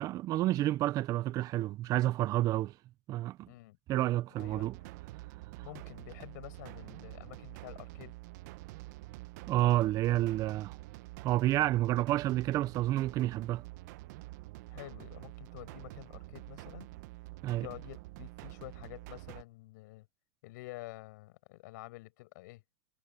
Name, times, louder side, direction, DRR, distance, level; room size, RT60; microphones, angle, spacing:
voice 1, 0.0-2.8 3.1-3.5 3.9-4.8 9.5-10.8 11.2-13.6 17.4-17.7, right 15 dB, 30° right, 0.8 m, -29 dB
voice 2, 3.5-3.8 4.3-4.7 5.6-8.2 14.7-16.9 17.6-20.1 20.4-22.6, left 20 dB, 60° left, 7.8 m, -49 dB
sound 1, 4.4-19.4, right 20 dB, 55° right, 1.0 m, -47 dB
hypercardioid pair, 130°, 11 cm